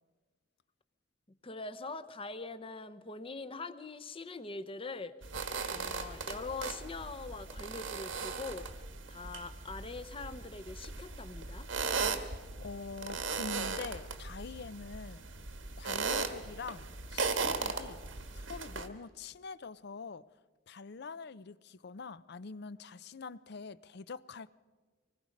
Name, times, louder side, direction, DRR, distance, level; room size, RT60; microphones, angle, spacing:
voice 1, 1.4-5.2 5.7-8.7 9.1-11.7, left 3 dB, 30° left, 0.8 m, -43 dB
sound 1, 5.2-18.9, right 4 dB, 90° right, 1.5 m, -38 dB
voice 2, 12.6-15.2 15.8-18.0 18.3-20.3 20.7-24.5, left 4 dB, 60° left, 0.6 m, -45 dB
25.0 x 20.0 x 5.3 m
head